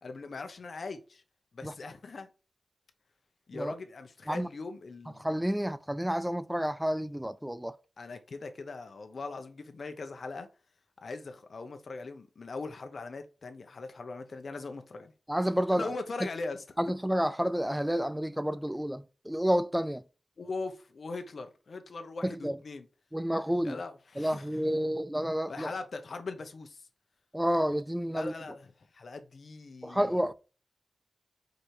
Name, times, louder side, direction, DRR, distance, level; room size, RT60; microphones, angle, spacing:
voice 1, 0.0-1.2 1.5-2.3 3.5-5.3 8.0-10.5 11.0-15.1 15.7-16.6 20.4-22.9 23.6-24.5 25.5-26.9 28.1-30.1, left 3 dB, 60° left, 1.1 m, -40 dB
voice 2, 5.2-7.8 15.3-15.9 16.8-20.0 22.2-22.6 23.1-23.8 24.2-25.7 27.3-28.3 29.8-30.3, equal, 5° right, 0.4 m, -30 dB
5.2 x 5.0 x 4.5 m
wide cardioid pair, 135°, 0 cm